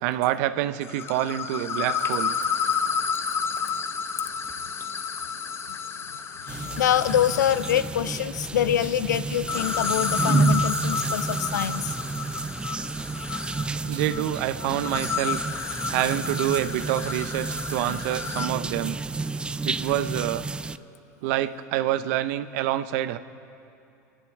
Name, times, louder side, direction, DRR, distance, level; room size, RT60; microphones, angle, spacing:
voice 1, 0.0-2.3 13.8-15.4 15.9-19.0 19.6-20.5 21.2-23.2, right 13 dB, 65° right, 12 dB, 0.6 m, -27 dB
sound 1, 0.8-8.0 9.3-18.5, left 6 dB, 25° left, 0.8 m, -31 dB
voice 2, 6.4-12.0, left 10 dB, 90° left, 15 dB, 0.4 m, -25 dB
sound 2, 6.5-20.8, right 3 dB, 10° right, 0.3 m, -30 dB
29.0 x 11.0 x 3.6 m, 2.7 s
hypercardioid pair, 90°, 9 cm